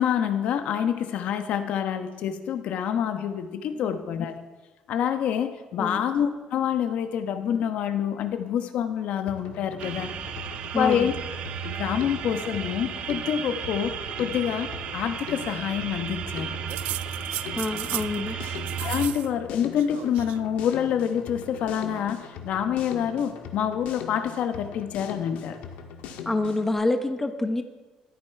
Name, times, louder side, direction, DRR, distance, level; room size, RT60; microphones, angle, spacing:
voice 1, 0.0-4.3 4.9-10.1 10.7-11.1 11.6-16.6 18.8-25.6, left 9 dB, 65° left, 8 dB, 1.1 m, -27 dB
Drum kit, 9.3-26.7, left 7 dB, 85° left, 1.6 m, -41 dB
sound 1, 9.8-19.1, right 8 dB, 60° right, 1.1 m, -34 dB
voice 2, 10.7-11.1 17.5-18.4 26.2-27.6, left 2 dB, 10° left, 7 dB, 1.0 m, -27 dB
sound 2, 16.7-18.2 18.4-19.3 19.5-20.4 21.4-22.1, right 16 dB, 85° right, 0.3 m, -36 dB
15.0 x 12.5 x 4.8 m, 1.2 s
cardioid pair, 135°, 2 cm